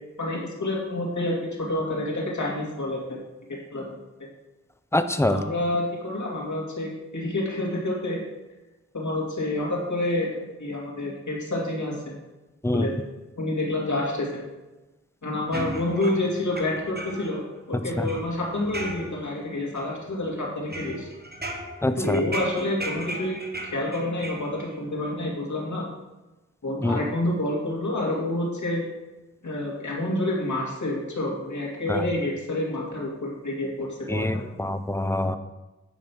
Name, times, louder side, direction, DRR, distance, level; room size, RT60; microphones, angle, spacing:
voice 1, 0.2-3.2 3.7-4.0 5.3-8.2 8.9-10.3 10.6-12.1 12.7-12.9 13.4-14.4 15.2-17.4 17.7-21.1 21.9-23.4 23.7-25.8 26.6-28.8 29.4-34.3, left 1 dB, 85° left, -3 dB, 2.4 m, -28 dB
voice 2, 4.9-5.4 12.6-12.9 18.0-18.1 21.8-22.2 26.8-27.0 31.9-32.0 34.1-35.4, left 1 dB, 10° left, 9 dB, 0.7 m, -24 dB
sound 1, 15.5-17.4 17.8-19.4 19.8-20.3 20.7-24.8, right 1 dB, 35° right, 1.4 m, -36 dB
9.4 x 5.3 x 6.1 m, 1.1 s
wide cardioid pair, 50°, 29 cm